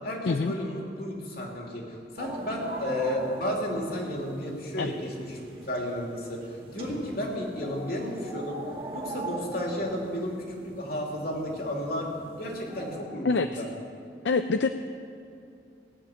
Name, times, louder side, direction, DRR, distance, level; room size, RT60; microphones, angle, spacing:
voice 1, 0.0-6.4 6.7-8.6 8.9-10.3 10.6-12.1 12.4-13.7, left 1 dB, 55° left, -1 dB, 2.9 m, -33 dB
sound 1, 2.2-13.0, right 2 dB, 30° right, 2.2 m, -41 dB
voice 2, 14.2-14.7, left 4 dB, 75° left, 8 dB, 0.5 m, -25 dB
18.0 x 7.4 x 9.1 m, 2.6 s
head